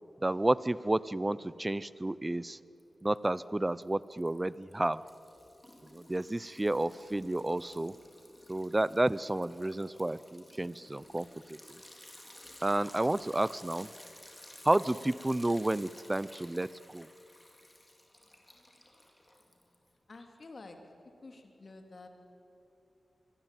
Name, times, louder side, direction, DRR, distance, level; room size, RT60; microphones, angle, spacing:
voice 1, 0.2-2.6 3.0-5.0 5.9-7.9 8.5-11.8 12.6-13.9 14.6-17.1, right 1 dB, 20° right, 18 dB, 0.6 m, -31 dB
Liquid, 2.8-3.4 3.7-19.9, left 1 dB, 15° left, 3.8 m, -54 dB
voice 2, 20.1-20.9 21.2-22.1, left 3 dB, 50° left, 4 dB, 3.2 m, -49 dB
25.5 x 23.0 x 9.2 m, 3.0 s
wide cardioid pair, 95°, 0 cm